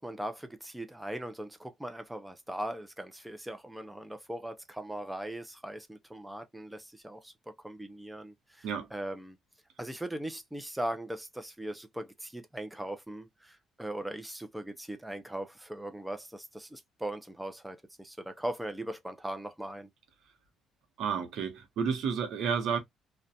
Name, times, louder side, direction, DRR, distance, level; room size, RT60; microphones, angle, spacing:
voice 1, 0.0-9.4 9.8-19.9, right 1 dB, 5° right, 0.4 m, -39 dB
voice 2, 21.0-22.8, right 6 dB, 75° right, 0.8 m, -31 dB
2.4 x 2.2 x 2.6 m
cardioid pair, 95°, 0 cm